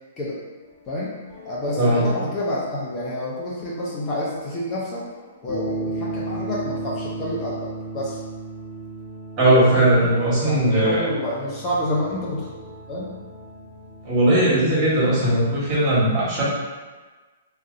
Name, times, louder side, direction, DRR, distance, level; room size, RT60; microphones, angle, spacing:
voice 1, 0.9-1.2 1.4-5.0 5.4-8.2 10.4-12.5 12.9-13.2, left 1 dB, 25° left, -6 dB, 0.6 m, -28 dB
sound 1, 0.9-15.8, right 3 dB, 5° right, 1.1 m, -36 dB
voice 2, 1.8-2.1 9.4-11.0 14.0-16.4, right 1 dB, 30° right, -7 dB, 1.2 m, -18 dB
2.5 x 2.2 x 3.7 m, 1.3 s
hypercardioid pair, 135°, 0 cm